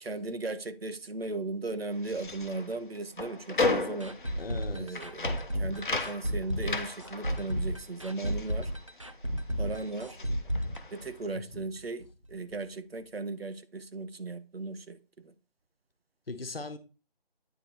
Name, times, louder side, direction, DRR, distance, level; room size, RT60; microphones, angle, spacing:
voice 1, 0.0-4.1 4.7-5.3 5.6-8.7 9.6-10.2 10.9-15.3, right 3 dB, 75° right, 0.9 m, -37 dB
sound 1, 1.9-9.4 9.7-11.2, left 3 dB, 55° left, 0.8 m, -35 dB
sound 2, 4.0-11.7 12.0-12.1 12.5-12.6, equal, 35° right, 0.4 m, -33 dB
voice 2, 4.4-5.0 11.3-11.6 16.3-16.8, left 3 dB, 70° left, 1.1 m, -39 dB
9.0 x 3.3 x 4.1 m
figure-of-eight pair, 160°, 30 cm